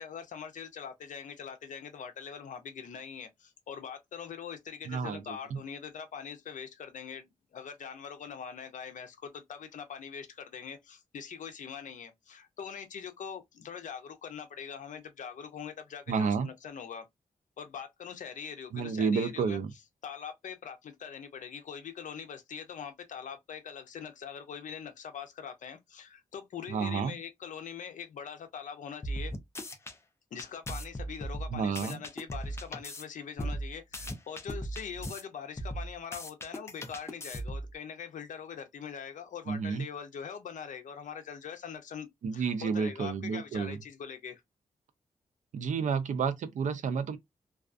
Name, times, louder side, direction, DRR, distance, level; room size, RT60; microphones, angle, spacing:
voice 1, 0.0-17.0 17.6-19.6 20.0-29.3 30.3-42.1 42.3-44.4, left 7 dB, 80° left, 0.5 m, -43 dB
voice 2, 4.9-5.4 16.1-16.5 18.7-19.7 26.7-27.2 31.5-32.0 39.5-39.8 42.2-43.8 45.5-47.2, right 5 dB, 75° right, 0.4 m, -30 dB
sound 1, 29.0-29.9 30.4-33.0 33.4-35.2 35.6-37.7, right 1 dB, 20° left, 0.3 m, -37 dB
2.4 x 2.3 x 2.4 m
wide cardioid pair, 175°, 13 cm